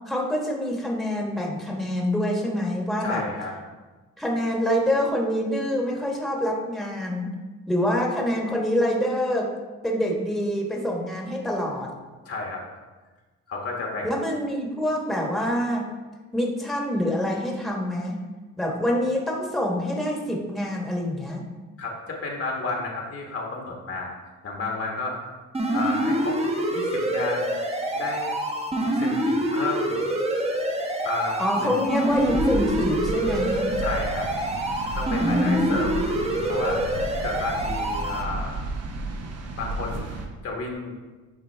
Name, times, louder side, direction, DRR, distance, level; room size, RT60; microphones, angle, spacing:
voice 1, 0.1-3.2 4.2-7.3 7.7-9.5 9.8-11.9 14.0-15.9 16.3-18.1 18.6-21.4 31.4-33.7 35.2-35.8, equal, ahead, -1 dB, 1.2 m, -26 dB
voice 2, 3.0-3.5 12.2-12.6 13.5-14.2 21.8-24.2 24.4-25.2 25.7-26.4 26.7-27.6 27.9-28.4 28.8-30.0 31.0-31.8 33.8-34.3 34.9-36.2 36.5-36.8 37.2-38.6 39.5-40.1 40.4-40.9, left 3 dB, 50° left, 0 dB, 1.3 m, -32 dB
sound 1, 25.5-38.2, right 1 dB, 20° right, 1.0 m, -26 dB
sound 2, 32.1-40.3, right 2 dB, 55° right, 1.0 m, -33 dB
9.1 x 3.6 x 3.4 m, 1.3 s
cardioid pair, 90°, 30 cm